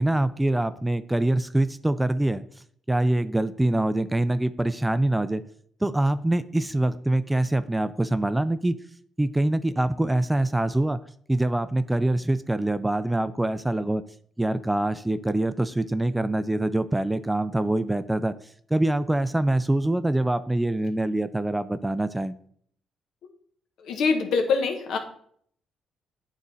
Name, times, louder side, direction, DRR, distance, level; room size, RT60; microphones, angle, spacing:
voice 1, 0.0-2.4 2.9-5.4 5.8-8.8 9.2-11.0 11.3-14.0 14.4-18.3 18.7-22.3, right 1 dB, 10° right, 13 dB, 0.3 m, -24 dB
voice 2, 23.8-25.0, left 4 dB, 75° left, 4 dB, 1.0 m, -24 dB
8.7 x 3.1 x 4.0 m, 0.63 s
cardioid pair, 90°, 0 cm